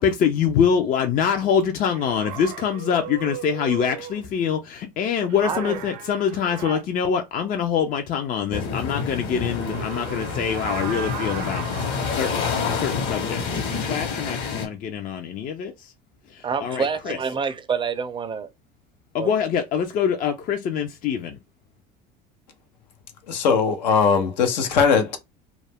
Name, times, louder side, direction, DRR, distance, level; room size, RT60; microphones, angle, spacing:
voice 1, 0.0-13.4 13.7-15.9 16.3-17.2 19.1-21.4, left 7 dB, 40° left, 0.5 m, -25 dB
sound 1, 1.9-4.3 5.3-6.8 9.4-12.3, right 10 dB, 70° right, 0.6 m, -37 dB
voice 2, 5.4-5.8 16.4-18.5 19.2-19.3, right 5 dB, 25° right, 0.5 m, -27 dB
sound 2, 8.5-14.7, left 5 dB, 55° left, 1.0 m, -28 dB
voice 3, 23.3-25.2, left 6 dB, 85° left, 0.7 m, -20 dB
2.4 x 2.1 x 3.4 m
hypercardioid pair, 85°, 21 cm